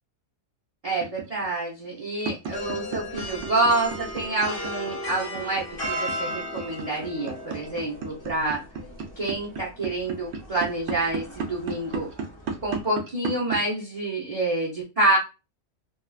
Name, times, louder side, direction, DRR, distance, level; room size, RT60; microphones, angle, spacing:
voice 1, 0.8-8.6 9.2-12.1 12.6-15.2, right 2 dB, 40° right, -4 dB, 0.5 m, -27 dB
sound 1, 1.0-13.6, right 4 dB, 65° right, 0.9 m, -32 dB
sound 2, 2.5-12.8, left 1 dB, 25° left, 0.5 m, -37 dB
2.6 x 2.2 x 2.3 m, 0.29 s
omnidirectional pair, 1.4 m